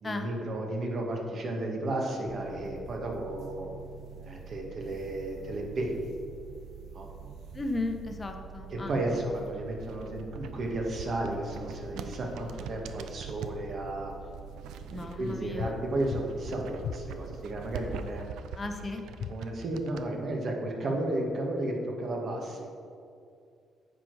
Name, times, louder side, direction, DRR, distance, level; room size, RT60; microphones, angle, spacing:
voice 1, 0.0-3.7 4.2-6.1 6.9-7.1 8.7-14.1 15.0-18.3 19.3-22.7, right 1 dB, 55° right, 0 dB, 1.5 m, -33 dB
sound 1, 2.2-18.3, right 6 dB, 70° right, 0.8 m, -46 dB
voice 2, 7.5-8.9 14.9-15.7 18.6-19.0, left 2 dB, 25° left, 5 dB, 0.8 m, -35 dB
phone book fast filpping, 9.8-13.6 14.3-15.6 15.9-20.0, right 7 dB, 90° right, 0.4 m, -43 dB
sound 2, 15.5-15.8 16.0-16.3 16.8-17.0 19.1-19.4, left 9 dB, 75° left, 0.3 m, -36 dB
8.8 x 5.1 x 4.7 m, 2.4 s
cardioid pair, 90°, 0 cm